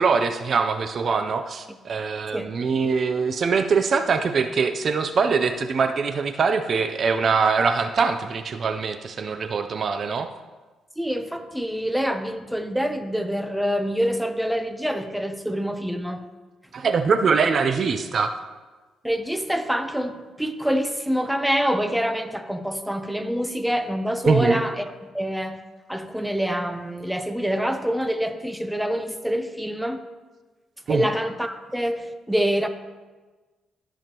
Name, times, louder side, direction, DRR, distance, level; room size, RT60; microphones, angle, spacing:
voice 1, 0.0-10.3 16.7-18.3 24.2-24.6 30.9-31.1, right 5 dB, 50° right, 0.5 m, -23 dB
voice 2, 11.0-16.2 19.0-25.6 25.9-30.1 30.9-32.7, equal, 5° right, 0.7 m, -26 dB
13.5 x 7.0 x 3.0 m
cardioid pair, 90°, 0 cm